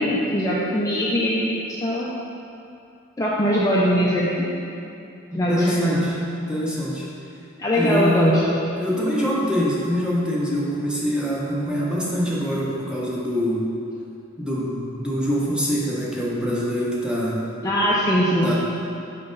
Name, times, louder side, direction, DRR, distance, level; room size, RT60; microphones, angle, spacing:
voice 1, 0.0-2.1 3.2-4.5 5.3-6.0 7.6-8.3 17.6-18.5, equal, 15° left, -7 dB, 0.5 m, -21 dB
voice 2, 5.3-7.1 7.7-8.4 8.8-13.7 14.4-17.4 18.4-18.5, equal, 5° right, -6 dB, 1.0 m, -24 dB
5.9 x 5.3 x 3.9 m, 2.6 s
head